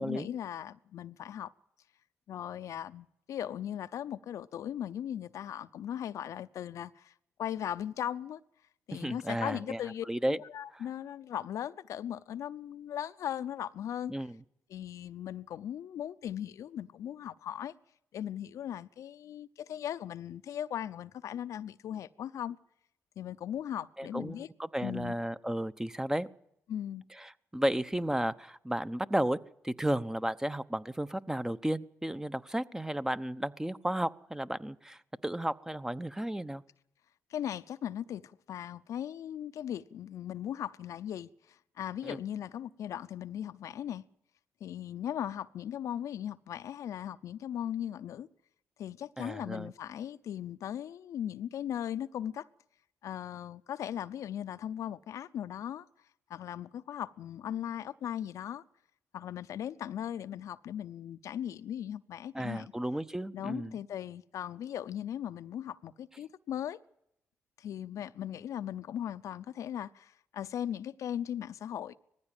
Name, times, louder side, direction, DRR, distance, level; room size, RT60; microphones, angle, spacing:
voice 1, 0.0-1.5 2.3-7.1 7.4-8.4 8.9-14.1 14.7-17.7 18.1-22.6 23.2-24.5 24.8-25.1 26.7-27.0 37.3-44.0 44.6-48.3 48.8-52.5 53.0-55.9 56.3-58.6 59.1-62.7 63.3-66.8 67.6-72.0, left 10 dB, 75° left, 0.7 m, -38 dB
voice 2, 8.9-9.8 10.1-10.4 10.7-10.8 14.1-14.4 24.0-26.3 27.2-29.4 29.6-36.6 42.0-42.2 49.2-49.7 62.3-63.8, right 1 dB, 10° right, 0.9 m, -33 dB
19.0 x 15.0 x 9.1 m
supercardioid pair, 60°, 5 cm